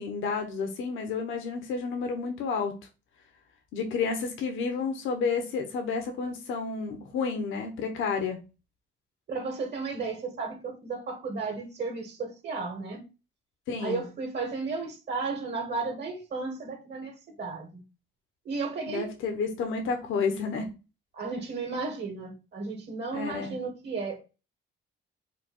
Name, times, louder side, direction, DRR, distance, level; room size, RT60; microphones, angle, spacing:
voice 1, 0.0-2.8 3.7-8.4 13.7-14.0 18.9-20.7 23.1-23.5, left 5 dB, 85° left, 1.0 m, -30 dB
voice 2, 9.3-13.0 13.8-17.8 18.5-19.1 21.1-24.2, right 4 dB, 60° right, 1.8 m, -34 dB
4.8 x 2.3 x 4.3 m
cardioid pair, 90°, 20 cm